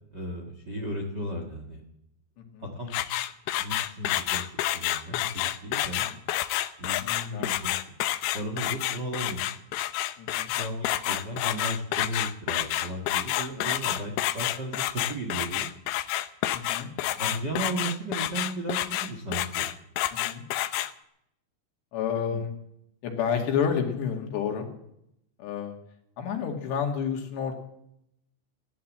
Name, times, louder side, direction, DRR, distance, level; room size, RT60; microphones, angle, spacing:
voice 1, 0.1-1.8 2.6-3.0 3.6-6.0 6.8-7.8 8.3-9.4 10.5-14.8 15.1-15.7 17.0-19.7 22.3-22.4, right 1 dB, 60° right, 2 dB, 1.0 m, -35 dB
sound 1, 2.9-20.9, left 14 dB, 90° left, 2.1 m, -29 dB
voice 2, 7.0-7.5 10.2-10.5 13.5-13.7 16.5-16.9 20.1-20.4 21.9-22.5 23.0-24.7 25.4-25.8 26.2-27.5, left 7 dB, 70° left, 3 dB, 4.2 m, -30 dB
16.5 x 11.0 x 7.4 m, 0.77 s
omnidirectional pair, 5.3 m